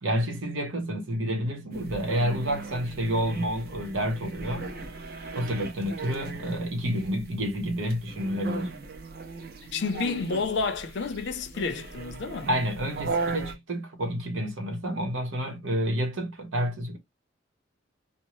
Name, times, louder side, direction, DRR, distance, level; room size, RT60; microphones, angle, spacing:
voice 1, 0.0-4.7 5.3-8.7 12.5-17.0, equal, 75° right, 1.0 m, -29 dB
sound 1, 1.7-13.5, right 3 dB, 50° right, 0.6 m, -38 dB
voice 2, 9.7-12.5, left 4 dB, 60° left, 0.5 m, -30 dB
2.6 x 2.0 x 3.0 m
head